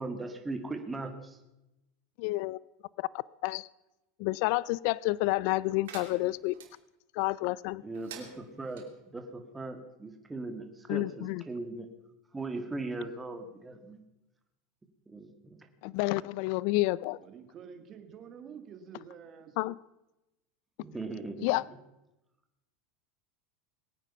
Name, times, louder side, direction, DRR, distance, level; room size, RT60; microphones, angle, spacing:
voice 1, 0.0-1.4 7.8-8.9 9.1-11.9 12.3-14.0 15.1-15.6 20.8-21.5, right 2 dB, 15° right, 6 dB, 2.0 m, -39 dB
voice 2, 2.2-2.6 3.0-3.1 3.4-3.7 4.2-6.5 7.2-7.8 10.9-11.4 15.8-17.2 19.6-19.7 21.4-21.6, left 20 dB, 65° left, 22 dB, 0.4 m, -29 dB
sound 1, 5.8-6.7 7.9-8.9, right 8 dB, 80° right, 2.7 m, -48 dB
voice 3, 17.2-19.6, right 7 dB, 40° right, 8 dB, 2.2 m, -48 dB
21.0 x 9.0 x 5.6 m, 0.94 s
hypercardioid pair, 105°, 0 cm